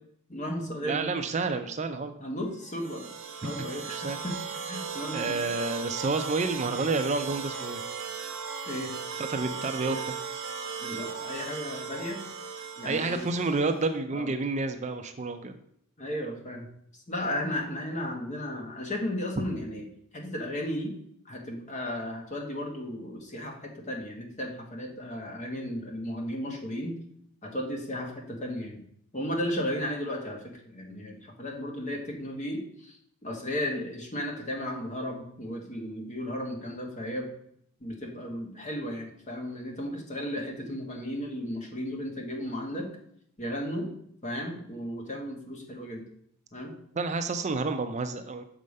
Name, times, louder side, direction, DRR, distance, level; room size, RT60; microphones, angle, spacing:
voice 1, 0.3-1.1 1.4-1.5 2.2-3.1 3.4-4.4 4.7-5.5 8.7-8.9 10.8-12.2 12.8-13.3 14.1-14.3 16.0-16.7 16.9-19.9 20.1-20.9 21.2-27.0 27.4-28.8 29.1-37.3 37.8-42.9 43.4-43.9 44.2-46.0 46.5-46.7, equal, 35° left, 2 dB, 1.4 m, -34 dB
voice 2, 0.8-2.1 3.4-4.2 5.1-7.8 9.3-10.1 12.8-15.6 47.0-48.4, right 3 dB, 35° right, 8 dB, 0.5 m, -30 dB
sound 1, 2.6-13.9, right 6 dB, 70° right, 1.0 m, -37 dB
6.6 x 5.0 x 5.3 m, 0.69 s
head